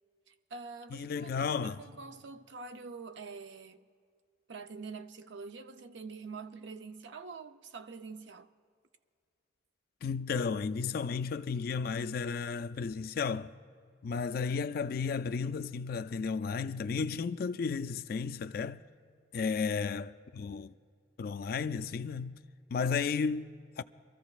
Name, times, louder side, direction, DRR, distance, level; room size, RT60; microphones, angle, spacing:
voice 1, 0.3-3.8 4.5-8.5, right 4 dB, 70° right, 0.5 m, -46 dB
voice 2, 0.9-1.8 10.0-13.5 14.0-18.8 19.3-20.7 21.2-22.4 22.7-23.8, left 5 dB, 50° left, 0.3 m, -33 dB
25.5 x 14.0 x 2.4 m
head